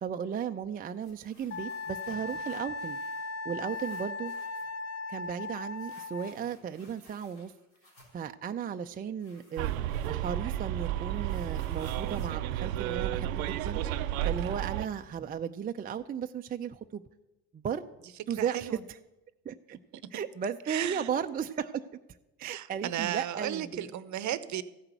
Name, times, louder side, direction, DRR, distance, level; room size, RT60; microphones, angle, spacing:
voice 1, 0.0-3.0 3.4-4.3 5.1-7.5 8.1-13.8 14.2-17.0 17.5-17.8 18.3-19.0 19.5-19.8 20.1-21.8 22.4-23.9, right 7 dB, 20° right, 7 dB, 0.4 m, -35 dB
sound 1, 0.8-3.3 3.6-4.8 5.8-8.3 9.2-10.5 10.8-13.4, left 1 dB, 90° left, 3.8 m, -59 dB
Wind instrument woodwind instrument, 1.5-6.4, left 3 dB, 40° left, 0.9 m, -38 dB
Bus, 9.6-14.9, right 12 dB, 90° right, 0.6 m, -32 dB
voice 2, 18.4-18.8 20.0-20.1 20.7-21.1 22.4-24.6, right 12 dB, 45° right, 15 dB, 0.8 m, -35 dB
14.0 x 5.8 x 8.1 m, 1.0 s
hypercardioid pair, 75°, 40 cm